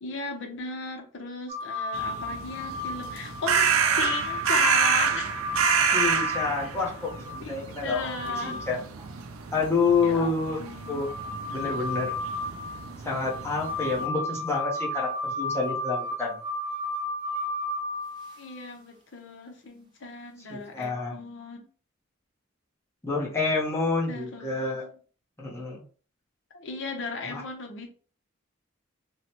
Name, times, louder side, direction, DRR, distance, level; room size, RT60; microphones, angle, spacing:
voice 1, 0.0-5.4 6.6-6.7 7.4-8.6 10.0-11.0 11.6-11.7 18.4-21.7 24.1-24.9 26.5-27.9, left 4 dB, 60° left, 2 dB, 0.6 m, -36 dB
sound 1, 1.5-7.4 7.9-8.7 9.0-9.1 10.2-18.6 20.8-20.9, left 1 dB, 25° right, 0.6 m, -33 dB
sound 2, 1.9-14.0, right 6 dB, 85° right, 0.4 m, -29 dB
voice 2, 5.9-8.8 9.5-10.6 10.9-11.1 11.5-12.1 13.0-16.4 20.5-21.2 23.0-24.8 25.4-25.8 27.3-27.4, left 4 dB, 15° left, -4 dB, 0.7 m, -28 dB
3.1 x 2.1 x 2.9 m, 0.40 s
head